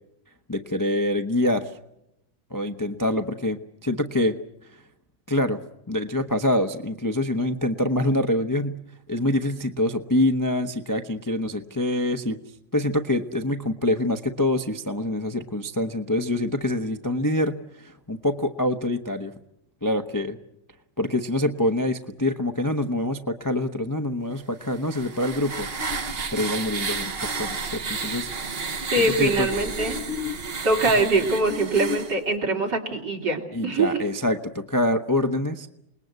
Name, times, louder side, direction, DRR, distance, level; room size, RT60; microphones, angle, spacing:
voice 1, 0.5-1.8 2.5-4.4 4.7-4.8 5.3-5.6 5.9-8.8 9.1-12.4 12.7-19.3 19.8-20.4 21.0-26.0 26.3-28.3 29.0-29.5 30.8-30.9 33.5-35.7, left 1 dB, 20° left, 7 dB, 0.5 m, -25 dB
sound 1, 24.6-32.2, right 3 dB, 40° right, 1.2 m, -31 dB
voice 2, 28.9-30.0 30.6-34.0, right 2 dB, 75° right, 2 dB, 3.8 m, -23 dB
28.0 x 20.0 x 8.1 m, 0.84 s
omnidirectional pair, 1.9 m